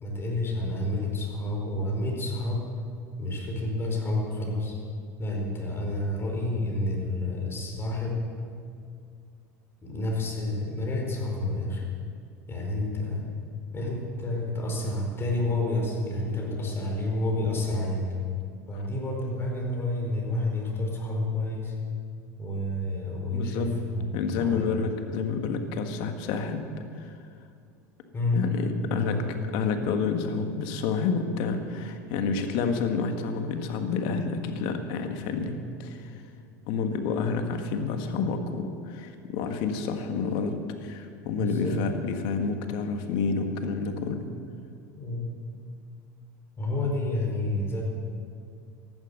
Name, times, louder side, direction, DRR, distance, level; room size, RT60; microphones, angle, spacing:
voice 1, 0.0-2.6 3.2-4.7 5.2-8.2 9.8-11.8 12.5-13.3 13.7-18.1 18.7-21.7 22.4-24.1 24.4-24.8 28.1-28.5 28.9-29.2 41.3-41.8 45.0-45.3 46.6-47.8, left 2 dB, 25° left, 0 dB, 4.7 m, -29 dB
voice 2, 23.3-23.7 24.1-26.6 26.9-27.2 28.3-29.2 29.5-36.1 36.7-40.5 40.8-44.3, left 5 dB, 60° left, 6 dB, 1.6 m, -29 dB
14.5 x 11.5 x 6.7 m, 2.3 s
hypercardioid pair, 90°, 9 cm